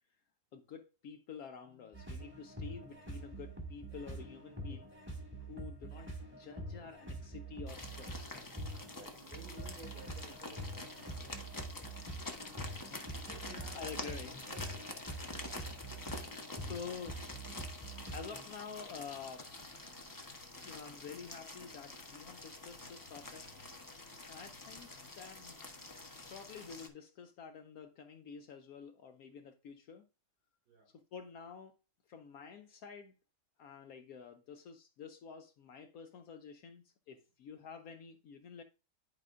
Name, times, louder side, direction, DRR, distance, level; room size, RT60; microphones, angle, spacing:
voice 1, 0.5-8.4 12.5-14.3 16.0-17.2 18.1-19.5 20.6-23.5 24.3-25.7 26.1-30.1 30.9-31.8 32.1-33.1 33.6-38.6, left 6 dB, 70° left, 1.0 m, -49 dB
sound 1, 1.9-18.5, right 1 dB, 10° right, 1.5 m, -46 dB
sound 2, 7.7-26.9, left 2 dB, 20° left, 0.6 m, -47 dB
voice 2, 8.9-15.2 17.5-18.0 30.7-30.9, right 3 dB, 85° right, 2.9 m, -57 dB
11.0 x 5.0 x 2.4 m
omnidirectional pair, 1.7 m